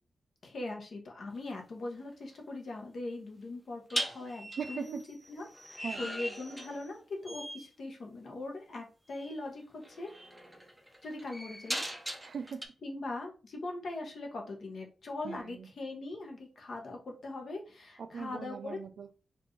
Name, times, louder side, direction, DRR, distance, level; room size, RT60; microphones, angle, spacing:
voice 1, 0.4-5.0 5.3-10.1 11.0-11.8 12.8-18.8, left 2 dB, 55° left, 1 dB, 1.1 m, -41 dB
sound 1, 1.3-1.6 3.9-7.0 7.2-7.7 9.2-9.3 9.8-12.7, equal, 5° right, 0.5 m, -39 dB
voice 2, 4.6-5.0 5.8-6.1 12.2-12.7 15.2-15.7 18.0-19.2, right 6 dB, 60° right, 9 dB, 0.5 m, -40 dB
4.4 x 2.5 x 3.1 m, 0.34 s
wide cardioid pair, 165°, 0 cm